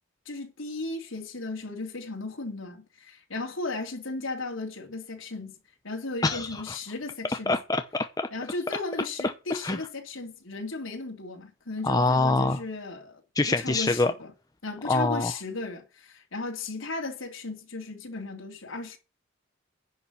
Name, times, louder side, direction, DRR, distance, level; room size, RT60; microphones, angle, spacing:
voice 1, 0.2-5.5 5.8-7.6 8.3-14.3 14.6-19.0, left 3 dB, 85° left, 3.1 m, -36 dB
voice 2, 6.2-6.8 7.3-8.3 9.5-9.8 11.8-12.6 13.4-14.1 14.8-15.3, left 2 dB, 20° left, 0.7 m, -25 dB
10.5 x 5.7 x 8.3 m
head